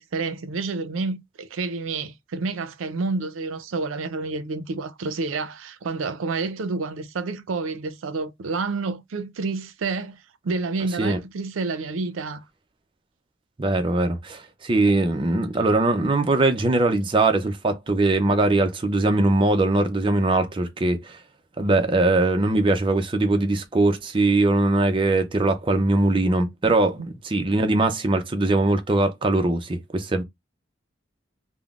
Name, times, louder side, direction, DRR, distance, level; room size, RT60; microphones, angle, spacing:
voice 1, 0.0-10.2 10.4-12.4, right 3 dB, 85° right, 0.5 m, -29 dB
voice 2, 13.6-21.2 21.6-30.2, right 2 dB, 25° right, 0.4 m, -21 dB
3.5 x 2.0 x 2.3 m
head